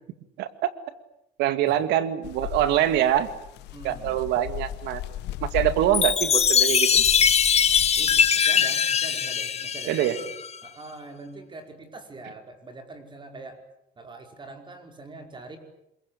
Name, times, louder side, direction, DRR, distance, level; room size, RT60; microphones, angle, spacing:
voice 1, 0.4-0.7 1.4-3.3 3.8-5.0 5.4-7.0 9.9-10.2, right 12 dB, 90° right, 11 dB, 2.2 m, -24 dB
sound 1, 2.2-8.3, left 13 dB, 85° left, 1.3 m, -37 dB
voice 2, 3.7-4.2 7.7-10.3 10.6-13.6 14.0-15.6, right 2 dB, 30° right, 5 dB, 5.4 m, -43 dB
Chime, 5.9-10.6, left 7 dB, 40° left, 1.6 m, -21 dB
27.0 x 22.5 x 8.7 m, 0.79 s
cardioid pair, 110°, 17 cm